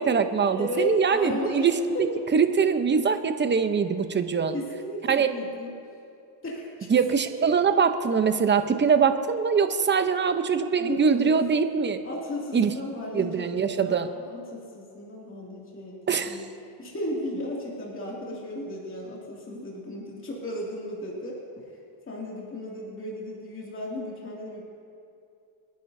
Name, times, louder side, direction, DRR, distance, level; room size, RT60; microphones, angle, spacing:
voice 1, 0.0-4.5 5.1-5.3 6.9-12.0 12.5-12.7 13.1-14.1 16.1-16.4, right 6 dB, 20° right, 9 dB, 0.8 m, -23 dB
voice 2, 0.5-2.2 4.5-5.8 6.4-6.9 10.8-11.4 12.0-16.5 16.8-21.4 22.1-24.6, left 1 dB, 25° left, -4 dB, 2.5 m, -35 dB
28.0 x 10.0 x 2.7 m, 2.5 s
cardioid pair, 105°, 50 cm